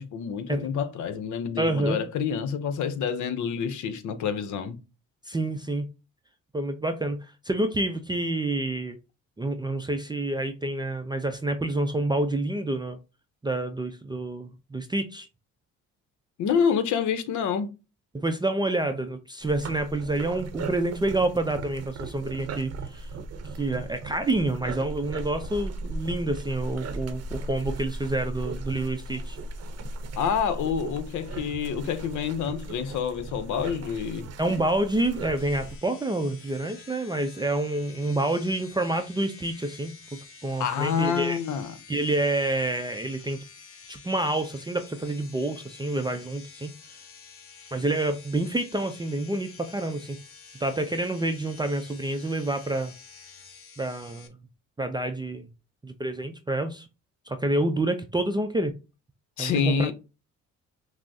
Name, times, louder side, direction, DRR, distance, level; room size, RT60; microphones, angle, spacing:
voice 1, 0.0-4.8 16.4-17.7 30.2-34.3 40.6-41.7 59.4-59.9, left 7 dB, 75° left, 0.7 m, -27 dB
voice 2, 1.6-2.0 5.3-5.9 6.5-9.0 9.4-13.0 13.4-15.3 18.1-23.1 23.6-29.4 34.4-39.9 40.4-41.4 41.9-43.4 43.9-46.7 47.7-50.2 50.6-52.9 53.8-54.3 54.8-55.5 55.8-56.9 57.3-58.7 59.4-59.9, right 2 dB, 15° right, 0.4 m, -28 dB
sound 1, 19.4-35.8, right 2 dB, 55° right, 0.7 m, -37 dB
sound 2, 35.4-54.3, left 5 dB, 45° left, 0.9 m, -49 dB
5.9 x 2.0 x 2.7 m
cardioid pair, 90°, 30 cm